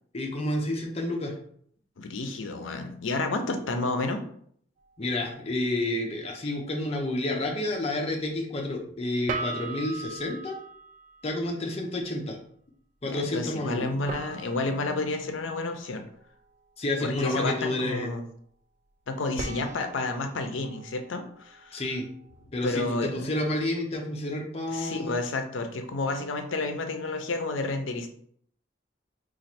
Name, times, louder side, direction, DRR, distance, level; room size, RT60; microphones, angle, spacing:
voice 1, 0.1-1.3 5.0-10.6 11.2-12.4 13.0-13.9 16.8-18.1 21.7-22.0 22.5-25.2, left 1 dB, 35° left, 1 dB, 0.6 m, -30 dB
voice 2, 2.0-4.2 13.0-16.0 17.0-18.2 19.1-21.8 22.6-23.2 24.7-28.1, left 2 dB, 90° left, 6 dB, 0.5 m, -30 dB
sound 1, 4.8-5.0 9.3-11.7 14.1-16.6 19.4-22.4, right 3 dB, 40° right, 0.3 m, -40 dB
3.1 x 2.4 x 4.2 m, 0.64 s
head